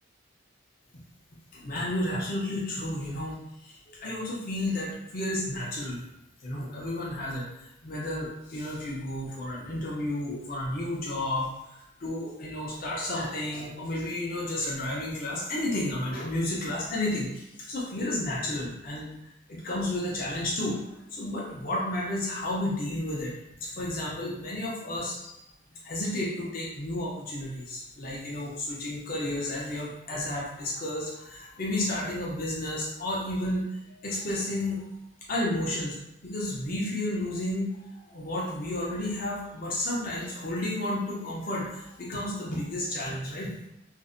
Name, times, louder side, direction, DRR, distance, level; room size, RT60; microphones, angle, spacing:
voice 1, 1.5-6.0 6.4-19.1 19.5-25.4 25.8-34.8 35.3-36.0 36.2-43.7, left 1 dB, 45° left, -4 dB, 0.6 m, -32 dB
2.5 x 2.0 x 2.5 m, 0.84 s
head